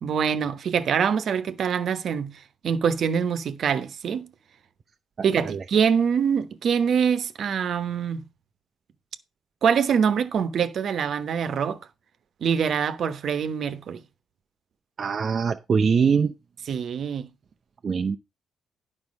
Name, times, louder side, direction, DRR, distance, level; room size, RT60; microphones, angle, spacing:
voice 1, 0.0-4.3 5.2-8.2 9.6-11.8 12.4-14.0 16.7-17.3, right 7 dB, 60° right, 1.0 m, -24 dB
voice 2, 5.2-5.6 15.0-16.3 17.8-18.2, right 6 dB, 45° right, 0.6 m, -23 dB
9.7 x 5.8 x 5.2 m
cardioid pair, 90°, 0 cm